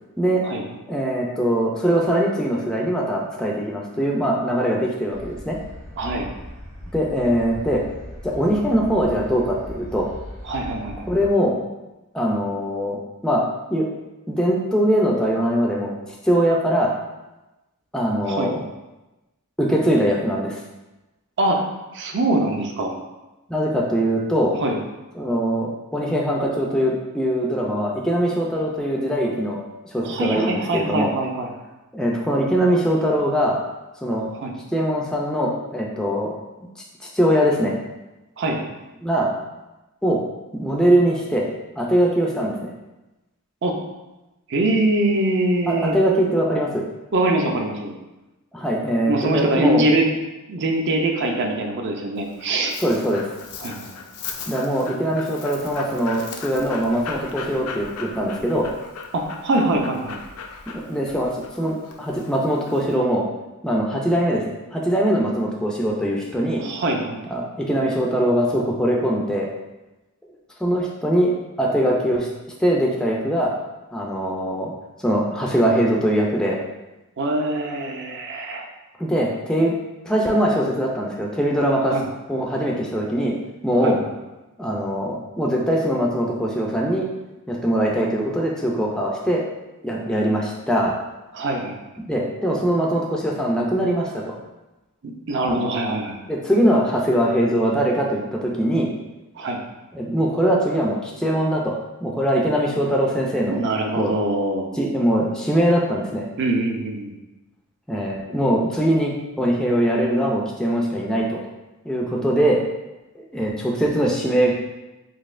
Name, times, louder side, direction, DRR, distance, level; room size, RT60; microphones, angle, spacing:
voice 1, 0.9-5.6 6.9-7.8 8.2-10.1 11.1-11.5 12.1-13.4 13.7-13.9 14.3-15.9 16.2-16.9 17.9-18.6 19.6-20.6 23.5-24.5 25.1-29.6 29.9-31.1 31.9-33.6 34.0-34.3 34.7-36.4 37.0-37.7 39.0-39.3 40.0-40.2 40.5-41.4 41.8-42.7 45.7-46.8 48.5-49.8 52.8-53.3 54.5-58.7 60.7-61.3 61.6-63.2 63.6-66.6 67.2-69.5 70.6-71.3 71.6-72.3 72.6-73.5 73.9-74.7 75.0-76.6 79.0-79.7 80.0-81.9 82.3-83.3 83.6-84.0 84.6-87.1 87.5-89.4 89.8-90.9 92.0-94.4 95.5-95.6 96.3-98.9 99.9-103.6 104.0-104.1 104.7-106.3 107.9-109.1 109.4-111.4 111.8-112.6 113.3-114.5, equal, 5° left, -2 dB, 0.3 m, -21 dB
sound 1, 5.1-11.3, left 1 dB, 70° right, 1.3 m, -38 dB
voice 2, 6.0-6.3 10.4-11.1 18.2-18.5 21.4-21.6 21.9-22.9 24.5-24.8 30.0-31.5 34.3-34.5 38.4-38.7 43.6-43.7 44.5-46.0 47.1-47.9 49.1-50.0 50.5-52.7 53.6-53.9 59.1-60.2 66.6-67.2 77.2-78.7 81.9-82.1 83.8-84.1 91.3-91.8 95.0-96.2 99.4-99.6 103.5-104.7 106.4-107.1, right 2 dB, 55° right, 2 dB, 0.5 m, -23 dB
Dog, 52.2-63.0, left 5 dB, 80° left, 0.4 m, -37 dB
4.0 x 2.8 x 2.5 m, 1.0 s
head